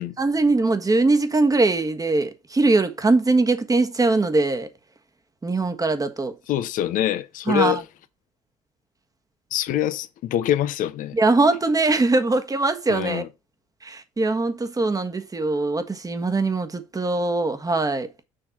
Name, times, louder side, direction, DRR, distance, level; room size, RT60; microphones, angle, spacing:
voice 1, 0.2-4.7 5.4-6.3 7.5-7.8 11.1-13.2 13.8-18.1, right 3 dB, 25° right, 1.4 m, -21 dB
voice 2, 6.5-7.8 9.5-11.2 12.9-13.3, left 11 dB, 60° left, 0.7 m, -25 dB
6.7 x 3.4 x 5.9 m
hypercardioid pair, 55°, 16 cm